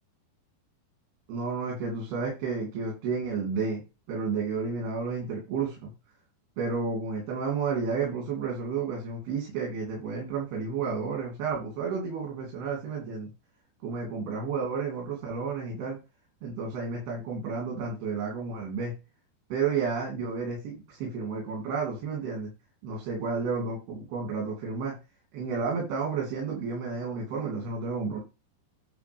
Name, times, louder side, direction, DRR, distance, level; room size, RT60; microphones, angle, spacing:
voice 1, 1.3-3.8 4.1-5.9 6.6-13.3 13.8-16.0 16.4-18.9 19.5-22.5 22.8-24.9 25.3-28.2, right 5 dB, 80° right, -1 dB, 4.7 m, -31 dB
11.0 x 3.8 x 5.3 m, 0.28 s
omnidirectional pair, 4.5 m